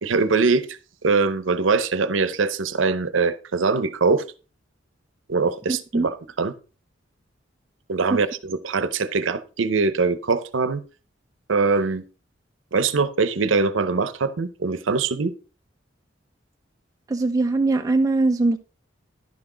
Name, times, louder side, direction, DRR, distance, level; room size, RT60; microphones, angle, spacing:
voice 1, 0.0-4.2 5.3-6.5 7.9-10.8 11.5-12.0 12.7-15.3, right 4 dB, 80° right, 0.7 m, -22 dB
voice 2, 17.1-18.6, right 2 dB, 20° right, 0.3 m, -21 dB
11.0 x 6.1 x 3.8 m
head